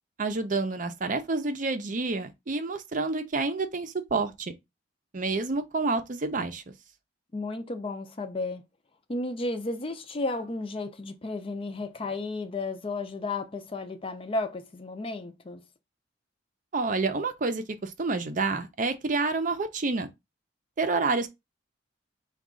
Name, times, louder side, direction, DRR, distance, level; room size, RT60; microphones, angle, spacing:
voice 1, 0.2-4.5 5.1-6.6 16.7-20.1 20.8-21.3, right 3 dB, 45° right, 0.5 m, -28 dB
voice 2, 7.3-8.7 9.1-15.6, left 2 dB, 30° left, 0.5 m, -33 dB
4.8 x 2.3 x 3.6 m
head